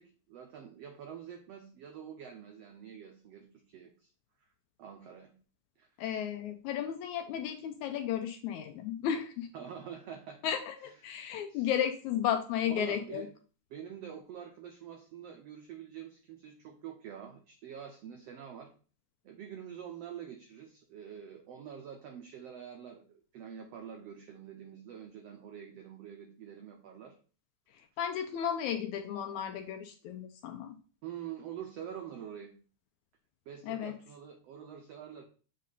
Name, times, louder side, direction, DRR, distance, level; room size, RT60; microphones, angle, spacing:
voice 1, 0.0-4.1 4.8-5.3 5.8-5.9 9.5-10.4 10.8-10.9 11.5-11.7 12.6-13.3 13.7-18.7 19.2-27.2 31.0-32.5 33.5-35.2, right 8 dB, 80° right, 4 dB, 1.4 m, -46 dB
voice 2, 6.0-9.5 10.4-13.3 28.0-30.8 33.6-33.9, left 9 dB, 80° left, 6 dB, 1.7 m, -34 dB
7.4 x 3.7 x 4.0 m, 0.39 s
omnidirectional pair, 3.8 m